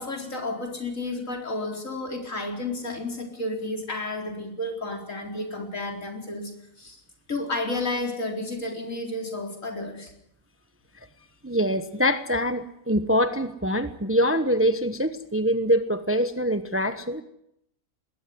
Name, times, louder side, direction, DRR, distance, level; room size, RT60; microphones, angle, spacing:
voice 1, 0.0-6.5 6.8-7.0 7.3-10.1, left 2 dB, 65° left, 2 dB, 4.6 m, -31 dB
voice 2, 11.4-17.2, equal, 10° right, 10 dB, 0.9 m, -24 dB
20.5 x 18.5 x 9.5 m, 0.79 s
omnidirectional pair, 1.5 m